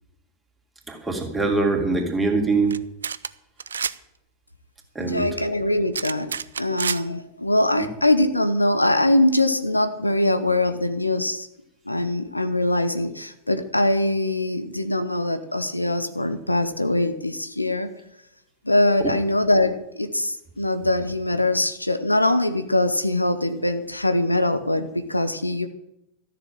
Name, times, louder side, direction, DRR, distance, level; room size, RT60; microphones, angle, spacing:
voice 1, 0.9-2.8 4.9-5.3 7.8-7.9, right 3 dB, 10° right, 1 dB, 2.9 m, -23 dB
sound 1, 2.7-2.8 3.0-3.3 3.6-3.9 5.9-7.0, right 6 dB, 70° right, 0.5 m, -28 dB
voice 2, 5.0-11.5 11.9-17.9 18.6-25.7, left 1 dB, 85° left, 10 dB, 0.9 m, -22 dB
14.0 x 7.2 x 9.1 m, 0.83 s
figure-of-eight pair, 90°, 0 cm